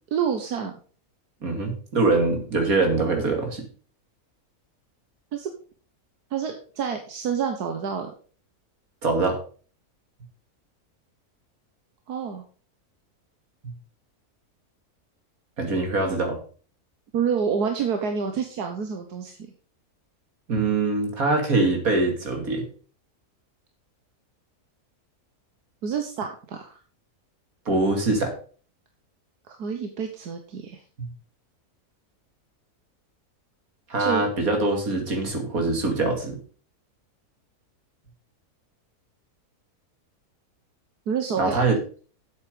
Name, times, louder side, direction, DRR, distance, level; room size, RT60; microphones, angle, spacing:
voice 1, 0.1-0.7 5.3-5.5 6.3-8.1 12.1-12.4 17.1-19.4 25.8-26.8 29.5-30.8 34.0-34.3 41.1-41.6, right 7 dB, 80° right, 5 dB, 1.7 m, -28 dB
voice 2, 1.4-3.7 9.0-9.4 13.6-13.7 15.6-16.4 20.5-22.7 27.7-28.3 31.0-31.1 33.9-36.4 41.4-41.8, right 3 dB, 65° right, 4 dB, 2.9 m, -23 dB
8.2 x 8.2 x 5.1 m, 0.41 s
omnidirectional pair, 1.6 m